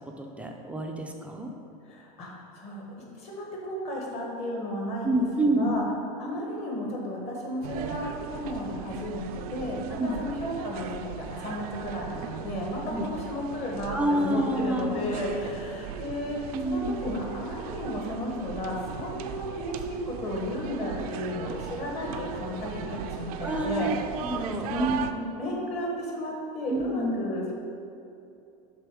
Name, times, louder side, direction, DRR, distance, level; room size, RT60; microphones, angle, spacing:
voice 1, 0.2-1.5 5.0-5.8 10.0-10.2 12.9-13.1 13.9-15.0 16.5-17.2 23.4-24.0 24.2-25.3 26.7-27.2, right 1 dB, 5° right, 1 dB, 0.3 m, -28 dB
voice 2, 1.9-5.3 5.5-5.8 6.2-16.4 16.6-23.9 24.7-24.9 25.4-27.5, left 1 dB, 35° left, -2 dB, 1.3 m, -33 dB
sound 1, 7.6-25.1, right 8 dB, 85° right, 0.4 m, -38 dB
6.8 x 3.4 x 4.8 m, 2.7 s
supercardioid pair, 150°, 19 cm